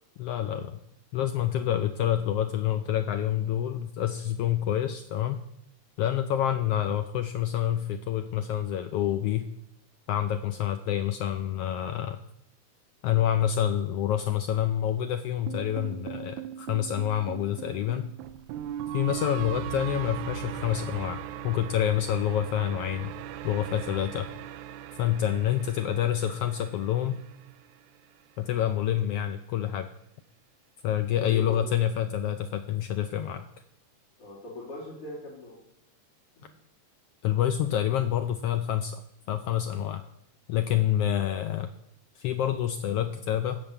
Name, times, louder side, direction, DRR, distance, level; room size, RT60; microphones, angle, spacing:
voice 1, 0.2-0.8 1.1-5.4 6.0-9.5 10.1-12.2 13.0-18.1 18.9-23.1 23.4-24.3 25.0-27.2 28.4-29.9 30.8-33.5 37.2-39.0 39.3-40.0 40.5-41.7 42.2-43.6, left 11 dB, 85° left, 9 dB, 1.3 m, -27 dB
sound 1, 15.5-27.7, right 10 dB, 90° right, 2.0 m, -39 dB
voice 2, 31.2-31.6 34.2-35.6 36.4-36.5, left 3 dB, 50° left, -7 dB, 4.1 m, -39 dB
14.5 x 5.3 x 8.0 m, 0.79 s
omnidirectional pair, 3.3 m